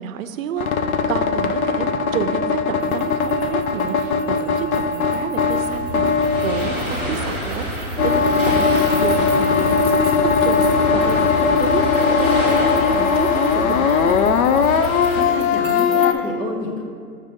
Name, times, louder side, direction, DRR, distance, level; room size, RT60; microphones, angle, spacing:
voice 1, 0.0-9.8 10.2-14.2, right 8 dB, 70° right, 10 dB, 0.6 m, -30 dB
sound 1, 0.6-7.5 8.0-16.1, left 5 dB, 85° left, 0.6 m, -19 dB
sound 2, 2.8-16.1, right 5 dB, 20° right, 0.3 m, -42 dB
sound 3, 5.6-15.2, right 1 dB, 15° left, 1.1 m, -29 dB
voice 2, 14.7-16.8, left 2 dB, 70° left, 1 dB, 1.5 m, -29 dB
6.4 x 6.4 x 3.6 m, 2.2 s
hypercardioid pair, 175°, 42 cm